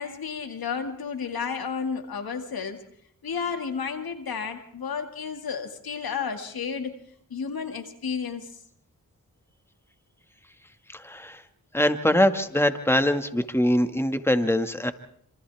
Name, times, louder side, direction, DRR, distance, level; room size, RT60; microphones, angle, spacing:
voice 1, 0.0-2.8 3.2-7.0 7.3-8.5, left 6 dB, 90° left, 6 dB, 2.3 m, -32 dB
voice 2, 10.9-11.4 11.7-14.9, left 1 dB, 5° left, 8 dB, 2.0 m, -23 dB
28.0 x 27.0 x 3.6 m, 0.69 s
cardioid pair, 45°, 35 cm